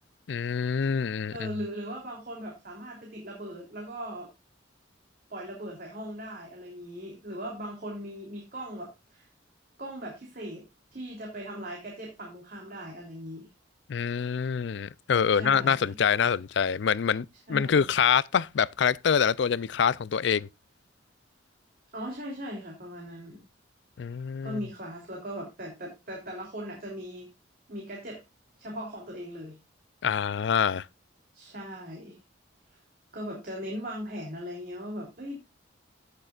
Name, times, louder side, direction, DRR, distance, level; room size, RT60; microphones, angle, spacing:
voice 1, 0.3-1.5 13.9-20.5 24.0-24.6 30.0-30.9, left 7 dB, 60° left, 0.4 m, -25 dB
voice 2, 1.3-4.3 5.3-9.3 9.8-10.6 10.9-13.5 15.3-15.9 17.5-17.9 21.9-23.4 24.4-27.3 27.7-28.2 28.6-29.6 31.3-32.2 33.1-35.4, equal, 50° right, 3.2 m, -39 dB
16.5 x 6.6 x 2.4 m
head